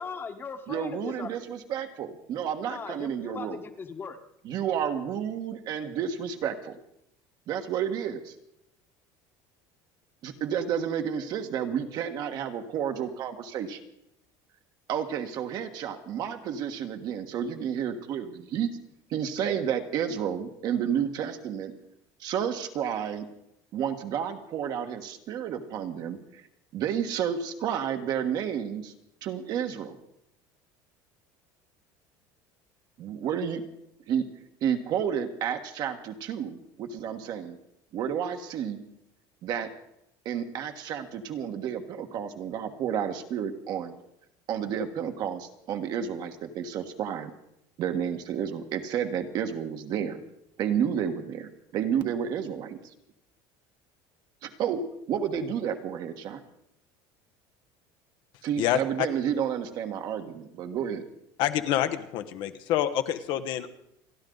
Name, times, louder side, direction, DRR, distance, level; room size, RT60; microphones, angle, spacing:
voice 1, 0.0-1.5 2.7-4.2, left 5 dB, 25° left, 7 dB, 1.3 m, -39 dB
voice 2, 0.7-3.6 4.4-6.8 7.5-8.3 10.2-13.8 14.9-18.7 19.1-21.7 22.2-23.3 23.7-26.4 26.7-28.9 29.2-30.0 33.0-33.6 34.1-34.2 34.6-37.6 37.9-38.8 39.4-39.7 40.2-44.0 44.5-47.3 47.8-50.2 50.6-52.9 54.4-54.8 55.1-56.4 58.4-61.0, right 8 dB, 50° right, 6 dB, 1.5 m, -31 dB
voice 3, 61.4-63.7, left 11 dB, 60° left, 9 dB, 1.0 m, -27 dB
28.5 x 10.5 x 3.9 m, 0.79 s
cardioid pair, 145°, 9 cm